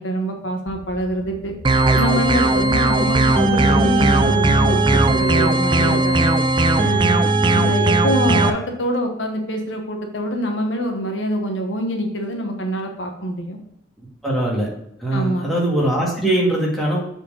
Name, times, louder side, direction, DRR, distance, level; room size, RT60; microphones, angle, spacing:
voice 1, 0.0-1.5 1.9-6.2 6.8-13.6 15.1-15.5, equal, 70° left, 3 dB, 1.1 m, -25 dB
sound 1, 0.7-7.2, equal, 75° right, 2.0 m, -41 dB
sound 2, 1.6-8.5, right 2 dB, 25° right, 0.5 m, -17 dB
voice 2, 14.2-14.7 15.0-17.0, right 1 dB, ahead, -5 dB, 1.9 m, -21 dB
7.0 x 4.5 x 5.3 m, 0.76 s
head